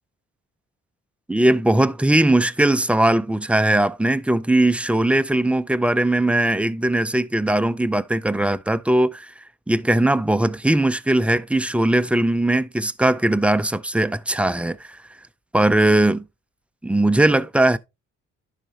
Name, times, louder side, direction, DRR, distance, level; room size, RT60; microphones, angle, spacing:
voice 1, 1.3-15.0 15.5-16.2 16.8-17.8, right 1 dB, 5° right, 0.4 m, -19 dB
11.0 x 5.7 x 2.7 m
cardioid pair, 90°, 30 cm